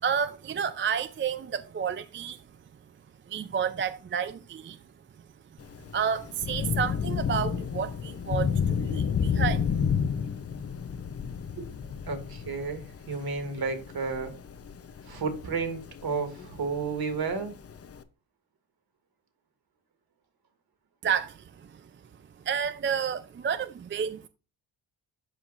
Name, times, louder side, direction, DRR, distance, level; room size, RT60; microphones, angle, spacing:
voice 1, 0.0-2.4 3.3-4.8 5.9-9.7 21.0-21.9 22.4-24.3, right 7 dB, 30° right, 0.4 m, -30 dB
Thunder / Rain, 5.6-18.0, left 7 dB, 30° left, 0.6 m, -31 dB
voice 2, 12.1-14.3 15.1-17.5, right 4 dB, 50° right, 1.9 m, -32 dB
12.5 x 4.7 x 2.5 m
cardioid pair, 125°, 46 cm